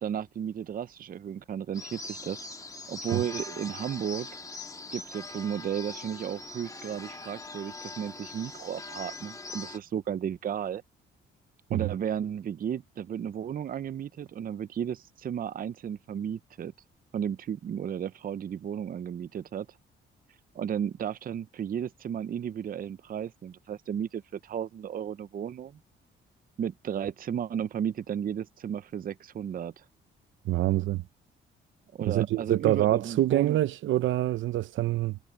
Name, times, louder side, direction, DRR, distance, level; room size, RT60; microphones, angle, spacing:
voice 1, 0.0-2.4 2.9-4.3 4.9-10.8 11.7-16.7 17.1-19.7 20.5-25.8 26.6-29.8 31.9-33.6, right 8 dB, 45° right, 0.6 m, -34 dB
sound 1, 1.7-9.8, left 3 dB, 15° left, 1.6 m, -42 dB
voice 2, 30.4-31.0 32.0-35.2, right 14 dB, 75° right, 0.8 m, -26 dB
cardioid pair, 90°, 20 cm